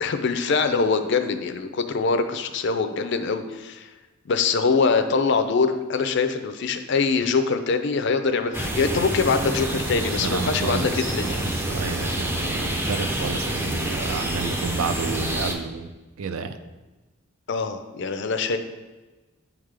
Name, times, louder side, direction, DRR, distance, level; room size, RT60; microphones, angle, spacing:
voice 1, 0.0-3.9 4.3-11.4 17.5-18.6, left 4 dB, 55° left, 8 dB, 0.4 m, -23 dB
sound 1, 8.5-15.5, right 1 dB, 10° right, 0.4 m, -27 dB
voice 2, 10.2-15.9 16.2-16.5, right 5 dB, 80° right, 8 dB, 0.4 m, -31 dB
8.3 x 3.7 x 3.3 m, 1.2 s
head